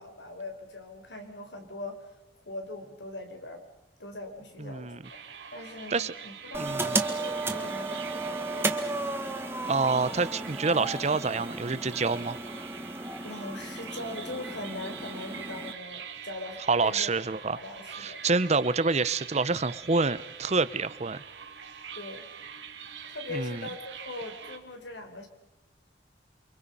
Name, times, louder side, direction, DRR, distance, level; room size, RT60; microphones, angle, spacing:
voice 1, 0.0-2.1 2.3-3.6 4.0-5.2 5.5-8.8 13.2-17.1 17.5-18.4 21.9-22.3 23.0-25.3, left 2 dB, 90° left, 5 dB, 4.5 m, -41 dB
voice 2, 4.6-5.0 5.9-6.1 6.6-7.0 9.6-12.4 16.7-17.6 18.0-21.2 23.3-23.6, right 4 dB, 40° right, 16 dB, 0.8 m, -27 dB
sound 1, 5.0-24.6, right 7 dB, 85° right, 2.4 m, -44 dB
sound 2, 6.5-15.7, right 2 dB, 15° right, 1.6 m, -34 dB
29.0 x 25.0 x 5.6 m, 0.90 s
head